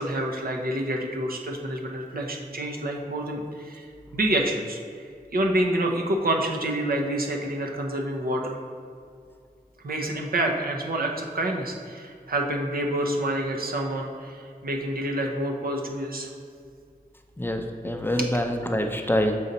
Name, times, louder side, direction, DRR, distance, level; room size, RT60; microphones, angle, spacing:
voice 1, 0.0-4.8 5.3-8.6 9.8-16.3 17.8-17.9 18.2-18.3, right 1 dB, 75° right, 0 dB, 0.9 m, -28 dB
voice 2, 17.4-19.3, left 1 dB, 15° left, 4 dB, 0.5 m, -25 dB
6.9 x 4.0 x 4.1 m, 2.2 s
wide cardioid pair, 60°, 16 cm